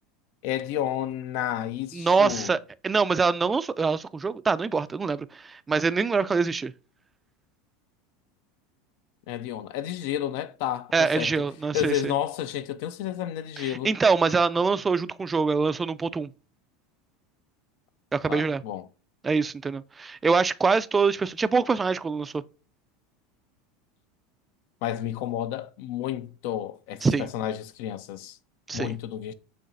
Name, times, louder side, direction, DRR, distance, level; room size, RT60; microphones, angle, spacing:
voice 1, 0.4-2.5 9.3-11.3 11.7-13.9 18.3-18.9 24.8-28.4 28.7-29.3, left 11 dB, 65° left, 0.5 m, -31 dB
voice 2, 1.9-2.6 2.8-6.7 10.9-12.1 13.6-16.3 18.1-18.6 19.2-22.4 27.0-27.3 28.7-28.9, right 4 dB, 20° right, 0.3 m, -24 dB
6.6 x 3.1 x 2.5 m
hypercardioid pair, 95°, 0 cm